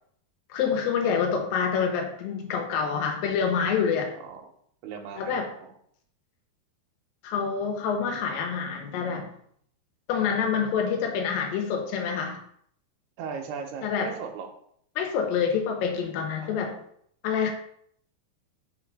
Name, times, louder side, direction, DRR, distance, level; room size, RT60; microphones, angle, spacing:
voice 1, 0.5-4.1 5.1-5.5 7.2-9.3 10.1-12.4 13.8-14.1 15.0-16.7 17.2-17.5, left 6 dB, 75° left, 3 dB, 2.5 m, -27 dB
voice 2, 4.8-5.7 13.2-14.5 16.4-16.6, right 6 dB, 85° right, 3 dB, 2.9 m, -38 dB
6.1 x 4.0 x 4.8 m, 0.67 s
omnidirectional pair, 4.6 m